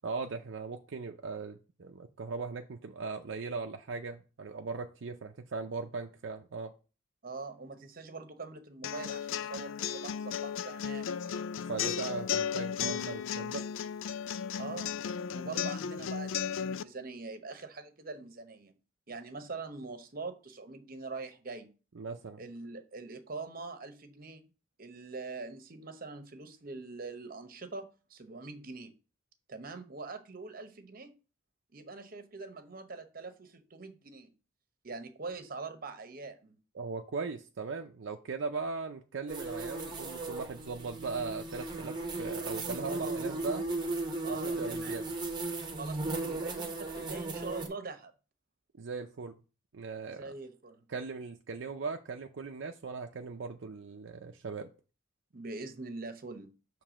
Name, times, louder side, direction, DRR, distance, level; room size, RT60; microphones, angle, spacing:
voice 1, 0.0-6.7 11.7-13.6 22.0-22.4 36.7-43.7 44.2-45.0 48.8-49.3 49.7-50.3 50.9-54.7, right 4 dB, 70° right, 0.5 m, -39 dB
voice 2, 7.2-11.1 14.6-15.0 15.3-18.7 19.1-21.7 22.4-24.4 24.8-28.9 29.5-31.1 31.7-34.3 34.8-36.6 42.8-43.2 44.2-45.0 45.8-48.1 50.1-50.8 55.3-56.5, right 3 dB, 50° right, 0.9 m, -43 dB
sound 1, 8.8-16.8, left 8 dB, 90° left, 0.4 m, -35 dB
sound 2, 39.3-47.7, right 2 dB, 25° right, 1.0 m, -36 dB
6.7 x 3.3 x 6.1 m
head